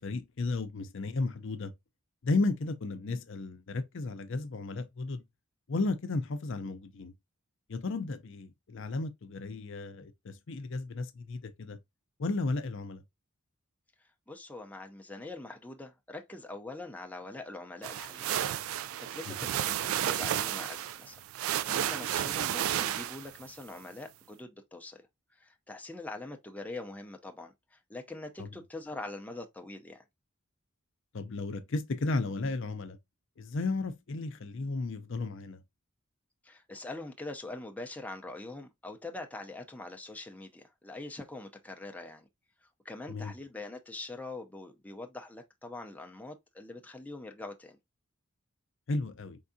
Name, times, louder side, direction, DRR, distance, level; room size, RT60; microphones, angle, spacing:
voice 1, 0.0-1.7 2.2-5.2 5.7-7.1 7.7-11.8 12.2-13.0 19.3-19.4 28.4-28.5 31.1-33.0 33.4-35.6 43.1-43.3 48.9-49.4, left 3 dB, 60° left, 0.6 m, -34 dB
voice 2, 14.3-18.4 19.1-21.2 21.7-25.0 25.3-30.0 36.4-42.3 42.6-47.8, left 2 dB, 5° left, 0.5 m, -43 dB
sound 1, 17.8-23.5, right 11 dB, 75° right, 0.3 m, -32 dB
4.6 x 3.5 x 2.6 m
head